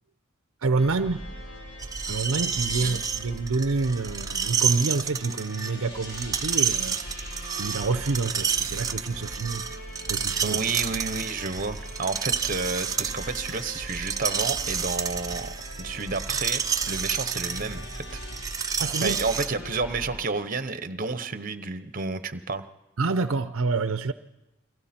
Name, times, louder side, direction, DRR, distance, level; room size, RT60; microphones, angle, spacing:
voice 1, 0.6-1.2 2.1-7.0 7.6-9.8 10.1-10.6 18.8-19.2 23.0-24.1, right 3 dB, 70° right, 11 dB, 0.7 m, -27 dB
sound 1, 0.8-20.2, equal, 55° left, 4.1 m, -40 dB
Screech, 1.8-19.5, right 7 dB, 15° right, 0.7 m, -30 dB
voice 2, 10.4-16.6 16.9-18.2 19.0-22.6, right 4 dB, 40° right, 11 dB, 0.9 m, -31 dB
29.5 x 23.0 x 4.4 m, 0.97 s
head